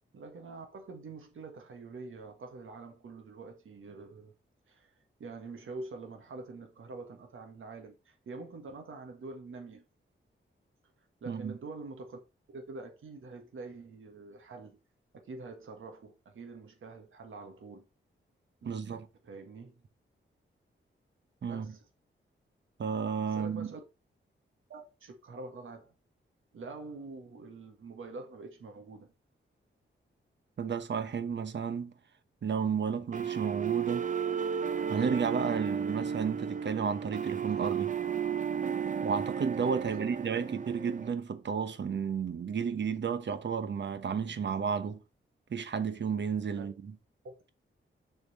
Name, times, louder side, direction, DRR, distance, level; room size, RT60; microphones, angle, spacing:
voice 1, 0.1-4.3 4.7-4.9 5.2-9.8 11.2-12.2 12.5-14.8 15.1-17.9 18.6-19.0 19.2-19.8 21.5-21.8 23.3-23.8 24.7-25.9 26.5-29.1 39.8-40.0 46.6-46.7 47.2-47.3, right 3 dB, 80° right, 1.7 m, -45 dB
voice 2, 11.3-11.6 18.6-19.1 21.4-21.8 22.8-23.7 30.6-31.9 32.4-34.1 34.9-38.0 39.0-45.0 45.5-46.9, right 6 dB, 60° right, 1.1 m, -32 dB
sound 1, 33.1-41.1, right 7 dB, 40° right, 0.6 m, -33 dB
7.1 x 4.4 x 5.1 m
wide cardioid pair, 140°, 21 cm